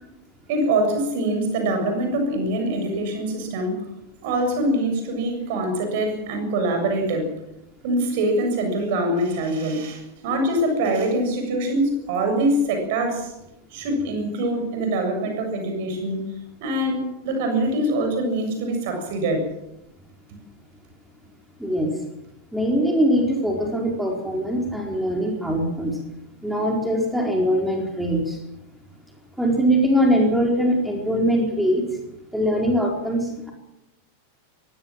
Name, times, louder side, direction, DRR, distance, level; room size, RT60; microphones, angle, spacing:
voice 1, 0.5-3.9 4.2-7.3 7.8-13.3 13.7-16.3 16.6-19.5, right 1 dB, 50° right, 5 dB, 7.3 m, -24 dB
voice 2, 21.6-21.9 22.5-25.9 26.4-28.4 29.4-31.8 32.3-33.5, equal, 5° right, 0 dB, 4.5 m, -22 dB
23.0 x 16.5 x 7.6 m, 0.86 s
figure-of-eight pair, 90°, 0 cm